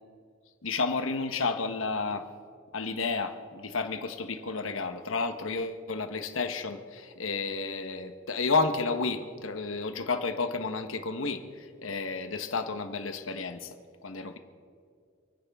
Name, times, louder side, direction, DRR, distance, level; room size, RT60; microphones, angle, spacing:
voice 1, 0.6-2.3 2.7-13.7 14.0-14.4, left 4 dB, 85° left, 8 dB, 1.2 m, -31 dB
29.5 x 10.0 x 3.6 m, 2.3 s
head